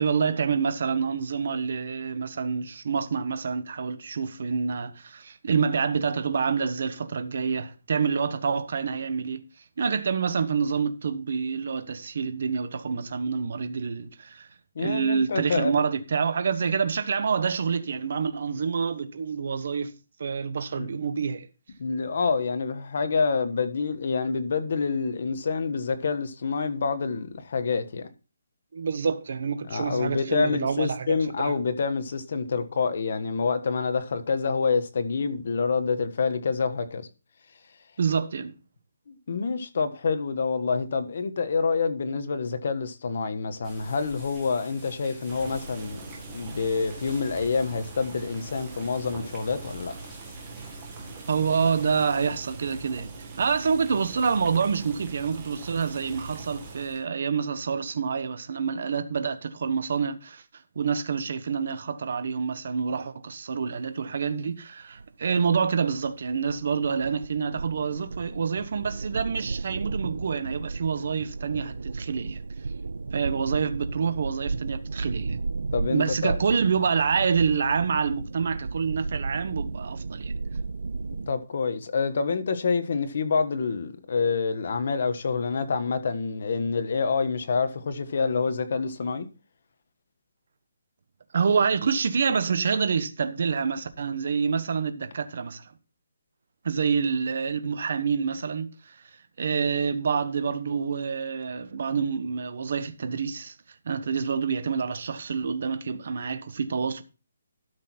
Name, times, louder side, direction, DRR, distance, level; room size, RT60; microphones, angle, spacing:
voice 1, 0.0-9.4 9.8-14.5 14.8-19.9 20.2-21.5 28.7-31.5 38.0-38.5 51.3-72.4 73.1-75.4 75.9-80.3 91.3-95.7 96.6-99.0 99.4-103.5 103.8-107.0, right 6 dB, 45° right, 1.2 m, -27 dB
voice 2, 14.7-15.8 20.8-20.9 21.8-28.1 29.6-37.1 39.1-46.0 46.3-49.9 75.7-76.4 81.3-89.3, left 5 dB, 45° left, 1.3 m, -27 dB
sound 1, 43.6-52.3, equal, ahead, 3.2 m, -48 dB
Boiling, 45.3-57.0, right 3 dB, 15° right, 1.9 m, -42 dB
sound 2, 65.0-81.3, right 3 dB, 75° right, 0.5 m, -34 dB
12.5 x 6.3 x 4.4 m
hypercardioid pair, 175°, 0 cm